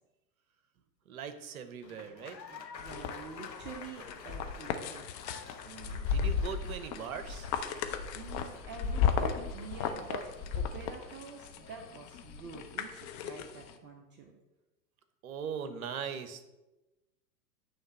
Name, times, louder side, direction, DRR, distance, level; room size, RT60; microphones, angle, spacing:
voice 1, 1.1-2.4 5.6-7.5 15.2-16.4, right 7 dB, 55° right, 10 dB, 0.9 m, -40 dB
Applause, 1.8-12.2, left 6 dB, 85° left, 0.9 m, -50 dB
voice 2, 2.5-5.1 8.1-14.3, right 5 dB, 20° right, 2 dB, 0.7 m, -47 dB
sound 1, 2.8-13.7, left 7 dB, 25° left, 0.5 m, -34 dB
8.9 x 3.4 x 6.8 m, 1.0 s
figure-of-eight pair, 95°, 50 cm